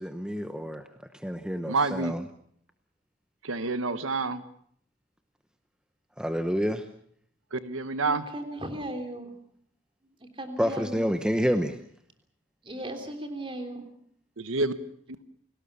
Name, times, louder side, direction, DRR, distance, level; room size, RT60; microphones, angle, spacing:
voice 1, 0.0-0.9 1.1-2.2 6.2-6.8 10.6-11.8, equal, 5° right, 8 dB, 0.9 m, -28 dB
voice 2, 1.7-2.2 3.4-4.4 7.5-8.2 14.4-14.7, right 3 dB, 85° right, 12 dB, 1.2 m, -28 dB
voice 3, 8.0-9.3 10.0-11.1 12.6-13.9, right 1 dB, 25° right, 6 dB, 3.4 m, -37 dB
29.0 x 19.0 x 6.9 m, 0.63 s
head